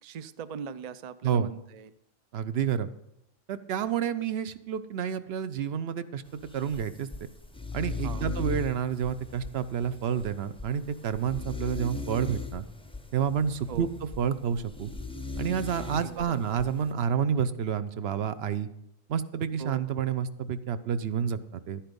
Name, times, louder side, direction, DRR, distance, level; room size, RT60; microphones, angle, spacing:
voice 1, 0.0-1.9 8.0-8.3 13.7-13.9 15.7-16.4 19.6-19.9, right 7 dB, 80° right, 15 dB, 0.3 m, -40 dB
voice 2, 2.3-2.9 3.5-6.2 6.5-7.1 7.7-12.6 13.1-13.9 14.2-14.9 15.4-18.7 19.1-21.8, right 8 dB, 60° right, 13 dB, 0.8 m, -29 dB
sound 1, 6.3-16.9, left 3 dB, 5° left, 0.5 m, -39 dB
11.5 x 10.0 x 5.2 m, 0.80 s
omnidirectional pair, 1.4 m